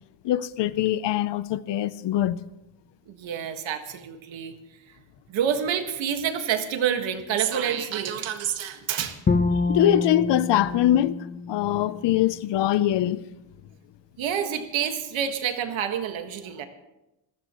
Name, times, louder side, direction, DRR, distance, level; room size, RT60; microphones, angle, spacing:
voice 1, 0.2-2.4 9.5-13.2, left 12 dB, 65° left, 0.7 m, -23 dB
voice 2, 3.1-4.5 5.3-9.2 14.2-16.7, right 8 dB, 90° right, 1.8 m, -28 dB
Bowed string instrument, 9.3-12.4, left 3 dB, 20° left, 0.7 m, -27 dB
26.0 x 14.5 x 3.1 m
cardioid pair, 175°, 45 cm